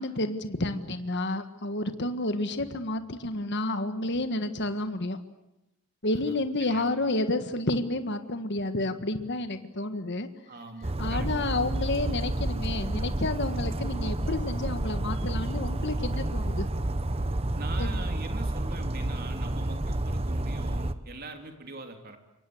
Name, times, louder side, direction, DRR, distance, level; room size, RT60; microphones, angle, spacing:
voice 1, 0.0-5.2 6.0-10.3 11.0-16.7 17.8-18.0, left 2 dB, 50° left, 9 dB, 1.6 m, -30 dB
voice 2, 10.5-11.3 17.5-22.2, right 2 dB, 45° right, 5 dB, 3.3 m, -42 dB
Bird vocalization bird call bird song, 10.8-20.9, right 1 dB, 25° right, 1.0 m, -30 dB
28.0 x 24.5 x 8.0 m, 0.89 s
head